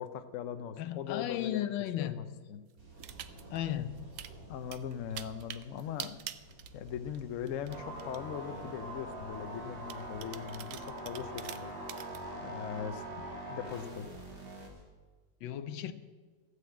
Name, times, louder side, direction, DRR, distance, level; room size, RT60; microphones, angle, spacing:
voice 1, 0.0-1.7 2.0-2.6 4.5-6.2 6.7-11.7 12.4-14.1, left 8 dB, 60° left, 10 dB, 0.8 m, -40 dB
voice 2, 0.8-2.2 3.5-3.9 15.4-15.9, left 12 dB, 80° left, 13 dB, 1.4 m, -34 dB
sound 1, 2.8-14.8, right 2 dB, 70° right, 4.1 m, -55 dB
sound 2, 3.0-3.6 4.0-4.3 4.7-7.2 7.5-8.2 8.8-8.9 9.9-12.2, right 11 dB, 85° right, 0.7 m, -44 dB
sound 3, 7.7-14.7, right 1 dB, 30° right, 2.0 m, -43 dB
14.0 x 6.6 x 8.7 m, 1.4 s
omnidirectional pair, 2.0 m